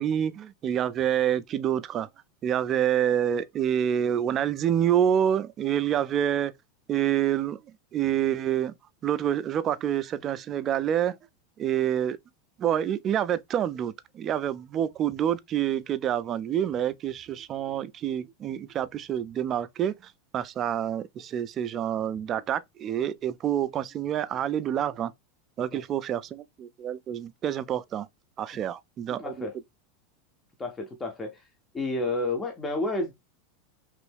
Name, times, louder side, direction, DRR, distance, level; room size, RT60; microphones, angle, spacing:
voice 1, 0.0-2.1 2.4-6.5 6.9-7.6 7.9-8.7 9.0-11.2 11.6-12.2 12.6-25.1 25.6-28.1 28.4-29.5, right 10 dB, 30° right, 0.3 m, -27 dB
voice 2, 29.2-29.6 30.6-31.4 31.7-33.1, left 2 dB, 15° left, 0.6 m, -30 dB
3.0 x 2.6 x 3.3 m
supercardioid pair, 135°, 0 cm